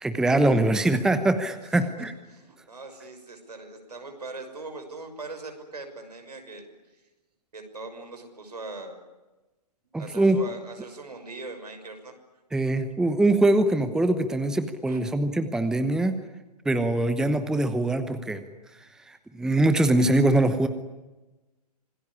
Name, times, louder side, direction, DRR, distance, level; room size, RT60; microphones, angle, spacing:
voice 1, 0.0-2.1 9.9-10.4 12.5-16.1 16.6-18.4 19.1-20.7, right 2 dB, 5° right, 10 dB, 1.0 m, -23 dB
voice 2, 2.3-6.7 7.5-9.0 10.0-12.1 14.9-15.0, right 3 dB, 75° right, 5 dB, 6.1 m, -40 dB
26.5 x 19.5 x 9.9 m, 1.1 s
figure-of-eight pair, 125°, 21 cm